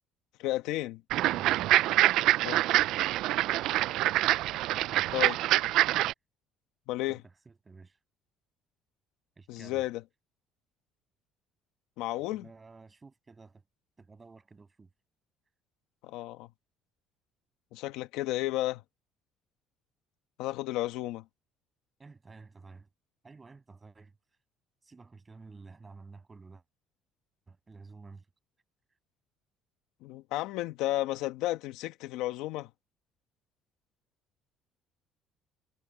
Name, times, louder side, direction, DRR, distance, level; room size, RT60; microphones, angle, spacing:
voice 1, 0.4-1.0 2.4-2.6 5.1-5.4 6.9-7.2 9.5-10.0 12.0-12.4 16.0-16.5 17.7-18.8 20.4-21.2 30.0-32.7, left 16 dB, 80° left, 1.2 m, -32 dB
sound 1, 1.1-6.1, right 16 dB, 75° right, 0.3 m, -25 dB
voice 2, 1.3-1.7 4.7-5.1 7.1-8.0 9.4-9.9 12.3-13.6 14.0-14.9 22.0-22.9 23.2-24.1 24.8-26.6 27.5-28.2, right 4 dB, 20° right, 6.9 m, -51 dB
cardioid pair, 105°, 0 cm